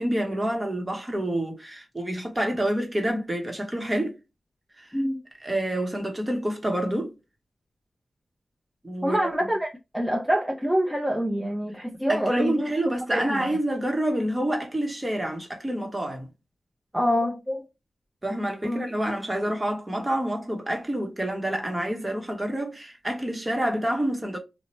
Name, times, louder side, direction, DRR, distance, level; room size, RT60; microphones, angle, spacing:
voice 1, 0.0-4.2 4.8-4.9 5.4-7.1 8.8-9.3 12.1-16.3 18.2-24.4, right 1 dB, 20° right, 0.9 m, -28 dB
voice 2, 9.0-9.7 9.9-12.7 13.1-13.6 16.9-17.6 18.6-18.8, equal, 5° right, 0.6 m, -26 dB
2.8 x 2.1 x 3.0 m
cardioid pair, 70°, 0 cm